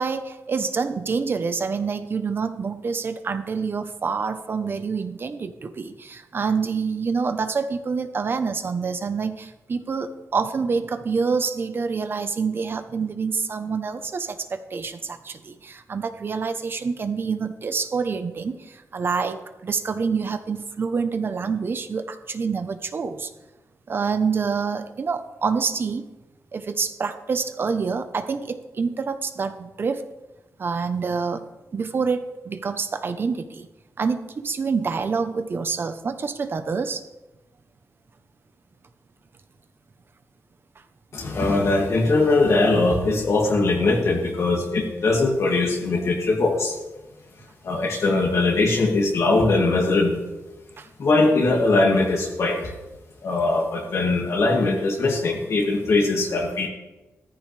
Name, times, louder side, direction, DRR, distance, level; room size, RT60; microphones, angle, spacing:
voice 1, 0.0-23.3 23.9-26.0 26.5-30.0 30.6-31.4 31.7-33.7 34.0-37.1 50.8-50.9, right 5 dB, 45° right, 10 dB, 0.9 m, -27 dB
voice 2, 41.1-46.8 47.6-50.2 51.0-52.7 53.2-56.7, left 3 dB, 65° left, -2 dB, 2.4 m, -21 dB
15.5 x 14.0 x 3.4 m, 1.1 s
wide cardioid pair, 145°, 5 cm